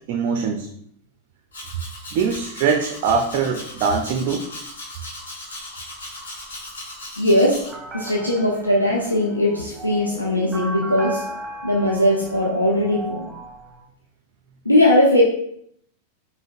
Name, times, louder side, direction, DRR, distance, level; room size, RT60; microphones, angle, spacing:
voice 1, 0.1-0.7 2.1-4.5, right 5 dB, 45° right, 5 dB, 0.4 m, -22 dB
Domestic sounds home sounds, 1.5-7.7, left 1 dB, 65° left, 1.0 m, -37 dB
voice 2, 7.2-7.6 7.9-11.2 11.6-13.3 14.6-15.2, left 1 dB, 85° left, -3 dB, 0.5 m, -19 dB
sound 1, 7.7-13.8, right 2 dB, 10° right, 0.8 m, -36 dB
5.0 x 2.5 x 2.4 m, 0.70 s
figure-of-eight pair, 90°, 0 cm